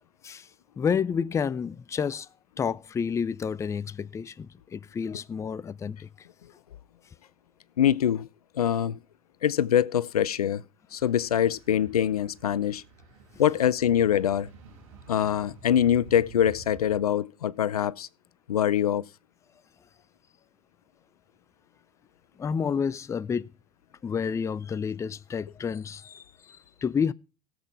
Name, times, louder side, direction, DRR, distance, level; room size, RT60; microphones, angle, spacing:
voice 1, 0.8-2.3 2.6-6.3 22.4-23.5 24.0-27.1, left 6 dB, 15° left, 0.4 m, -30 dB
voice 2, 7.8-8.3 8.5-9.0 9.4-10.6 10.9-12.8 13.4-14.5 15.1-18.1 18.5-19.1, left 10 dB, 80° left, 0.5 m, -24 dB
sound 1, 11.0-17.0, right 3 dB, 65° right, 5.1 m, -50 dB
17.5 x 7.7 x 3.4 m
hypercardioid pair, 85°, 19 cm